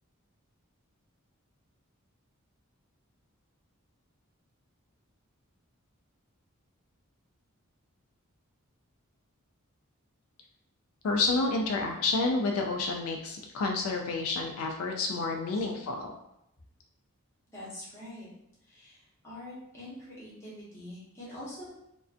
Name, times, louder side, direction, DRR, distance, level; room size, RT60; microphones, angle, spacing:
voice 1, 11.0-16.1, left 3 dB, 75° left, 3 dB, 0.3 m, -29 dB
voice 2, 17.5-18.3 18.7-21.7, left 1 dB, 15° left, -8 dB, 0.8 m, -45 dB
2.4 x 2.1 x 2.4 m, 0.80 s
head